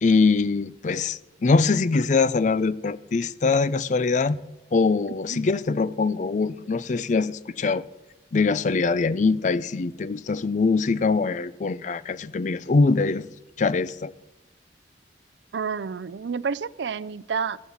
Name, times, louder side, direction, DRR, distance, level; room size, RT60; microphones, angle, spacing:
voice 1, 0.0-4.4 4.7-7.8 8.3-13.3 13.6-14.1, left 4 dB, 45° left, 0.4 m, -23 dB
voice 2, 15.5-17.6, right 5 dB, 85° right, 0.5 m, -29 dB
14.0 x 8.3 x 7.1 m
head